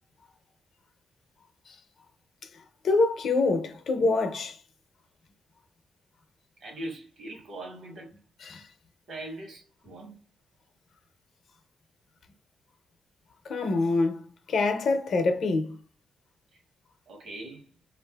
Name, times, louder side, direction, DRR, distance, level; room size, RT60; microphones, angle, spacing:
voice 1, 2.8-4.6 8.4-8.6 13.5-14.2 14.5-15.8, left 3 dB, 65° left, 0.6 m, -25 dB
voice 2, 6.6-8.1 9.1-10.2 16.5-16.6 17.1-17.7, right 1 dB, 75° right, 1.2 m, -41 dB
3.2 x 2.5 x 2.2 m
cardioid pair, 85°, 0 cm